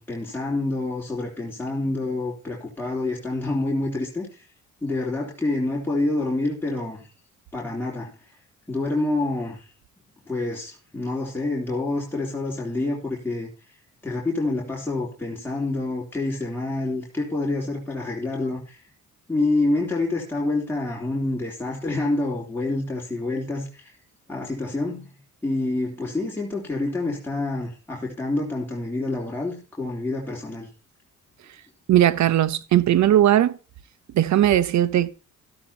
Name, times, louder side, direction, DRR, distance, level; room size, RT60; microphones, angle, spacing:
voice 1, 0.0-4.4 4.8-7.1 7.5-8.2 8.7-9.7 10.3-13.5 14.0-18.8 19.3-23.9 24.3-25.1 25.4-30.7, left 2 dB, 5° left, 3.3 m, -27 dB
voice 2, 31.9-33.6 34.1-35.1, right 12 dB, 65° right, 1.0 m, -18 dB
13.5 x 12.5 x 2.9 m
cardioid pair, 90°, 30 cm